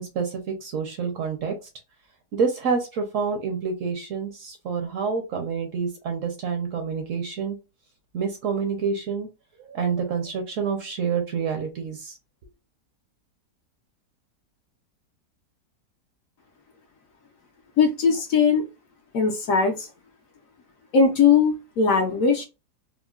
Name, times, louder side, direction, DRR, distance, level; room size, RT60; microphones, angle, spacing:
voice 1, 0.0-1.6 2.3-7.6 8.1-9.3 9.6-12.2, right 5 dB, 65° right, 4 dB, 0.9 m, -28 dB
voice 2, 17.8-18.6 19.1-19.9 20.9-22.4, left 5 dB, 65° left, 2 dB, 0.9 m, -20 dB
3.6 x 2.0 x 2.3 m, 0.27 s
omnidirectional pair, 1.8 m